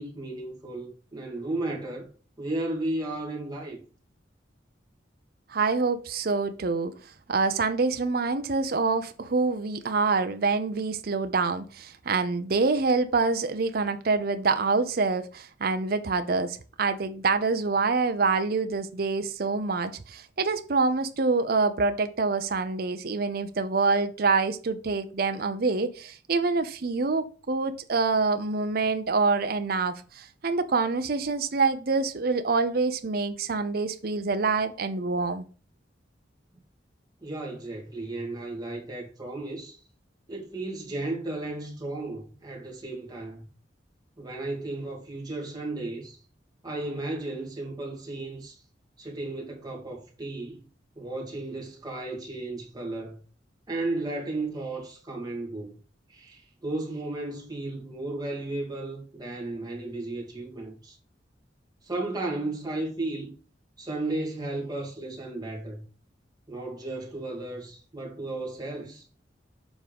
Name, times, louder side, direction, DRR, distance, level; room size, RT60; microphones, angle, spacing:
voice 1, 0.0-2.1 2.4-3.8 37.2-39.8 40.3-43.5 44.2-46.2 46.6-48.6 49.0-50.7 51.0-53.2 53.7-55.7 56.1-61.0 61.8-63.3 63.8-65.8 66.5-69.1, right 2 dB, 20° right, 2.2 m, -34 dB
voice 2, 5.5-6.9 7.3-35.4, right 4 dB, 55° right, 0.6 m, -26 dB
7.1 x 3.7 x 5.2 m
head